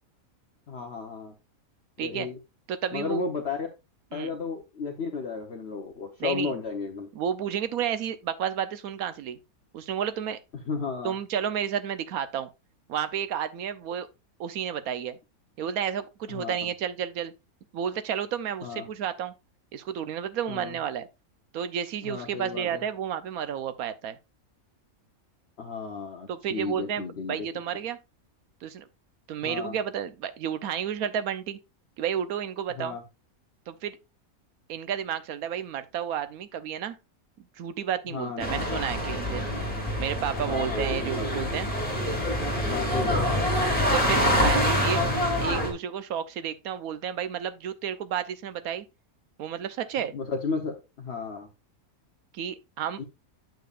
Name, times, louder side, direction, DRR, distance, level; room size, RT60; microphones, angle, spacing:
voice 1, 0.7-1.3 2.0-2.4 2.9-3.7 4.1-7.1 10.7-11.1 16.3-16.5 18.6-18.9 20.5-20.8 22.0-22.8 25.6-27.4 29.4-29.8 32.7-33.0 38.1-38.6 40.4-40.8 41.2-41.3 42.7-43.4 50.1-51.5 53.0-53.1, left 5 dB, 50° left, 1.1 m, -33 dB
voice 2, 2.7-3.3 4.1-4.3 6.2-6.5 7.1-9.4 9.7-10.4 11.0-12.5 12.9-14.1 14.4-15.2 15.6-17.3 17.7-19.3 19.7-21.1 21.5-24.2 26.3-28.0 28.6-28.9 29.3-31.6 32.0-33.0 33.7-34.0 34.7-37.0 37.6-39.4 40.0-41.7 43.9-45.0 45.4-48.8 49.4-50.1 52.3-53.0, right 9 dB, 85° right, 1.2 m, -31 dB
sound 1, 38.4-45.7, equal, 5° left, 2.6 m, -26 dB
9.2 x 6.9 x 2.4 m
omnidirectional pair, 1.5 m